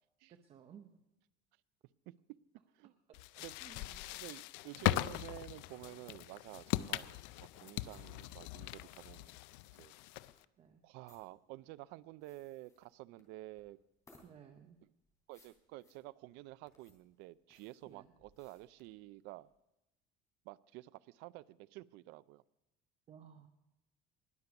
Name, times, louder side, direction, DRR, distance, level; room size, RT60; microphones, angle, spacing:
voice 1, 0.3-1.0 3.1-4.1 6.9-7.1 10.6-10.8 14.2-14.8 17.9-18.1 23.1-23.5, right 8 dB, 35° right, 0.8 m, -58 dB
voice 2, 2.1-2.4 2.7-2.9 3.4-3.6 4.1-9.4 9.7-9.9 10.2-10.3 10.8-13.8 15.3-19.5 20.4-22.4, right 18 dB, 75° right, 0.5 m, -51 dB
sound 1, 3.1-10.4, left 17 dB, 85° left, 0.4 m, -40 dB
sound 2, 7.9-19.5, left 2 dB, 20° left, 3.3 m, -69 dB
20.5 x 6.8 x 5.9 m
cardioid pair, 155°, 18 cm